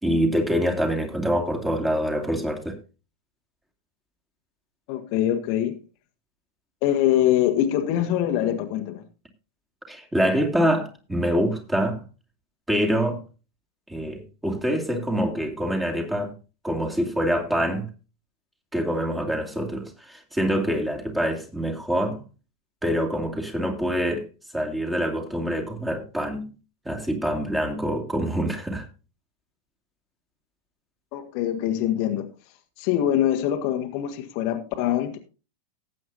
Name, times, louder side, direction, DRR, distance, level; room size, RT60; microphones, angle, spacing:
voice 1, 0.0-2.7 9.9-12.0 12.7-13.2 13.9-16.3 16.6-17.9 18.7-22.2 22.8-24.3 24.5-26.5 26.8-28.9, equal, 5° right, 2.7 m, -25 dB
voice 2, 4.9-5.8 6.8-9.0 31.1-32.3 32.8-35.2, left 11 dB, 45° left, 1.5 m, -24 dB
18.5 x 8.4 x 2.8 m
figure-of-eight pair, 90°, 0 cm